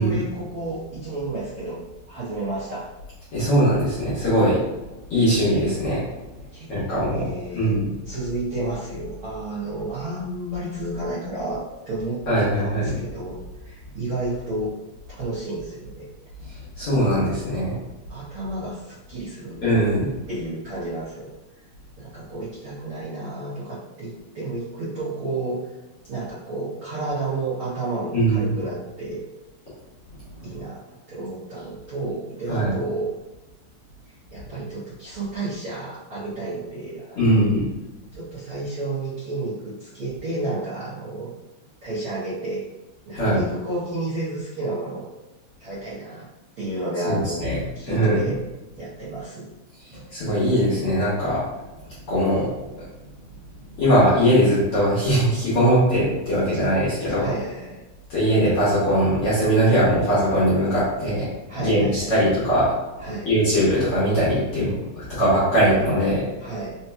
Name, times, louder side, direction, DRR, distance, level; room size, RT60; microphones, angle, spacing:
voice 1, 0.0-2.9 6.5-7.8 8.0-13.4 13.6-14.7 15.2-16.1 18.1-19.6 20.3-21.3 22.0-25.6 26.1-29.2 30.4-30.8 31.1-33.1 34.3-37.4 38.1-41.3 41.8-42.6 43.1-45.1 45.6-46.3 46.6-48.4 48.8-49.5 49.9-50.0 57.2-57.9 61.5-62.3 63.0-63.3 66.4-66.8, right 2 dB, 85° right, -11 dB, 1.2 m, -31 dB
voice 2, 3.3-4.6 5.1-6.0 6.7-7.2 7.5-7.8 12.3-12.9 16.8-17.8 19.6-20.1 28.1-28.5 32.5-32.7 37.2-37.7 43.2-43.4 47.0-47.6 47.9-48.3 50.1-51.4 52.1-52.5 53.8-57.2 58.1-61.3 61.6-62.6 63.3-66.2, equal, 55° left, -11 dB, 1.8 m, -20 dB
5.4 x 2.8 x 2.2 m, 1.0 s
omnidirectional pair, 4.2 m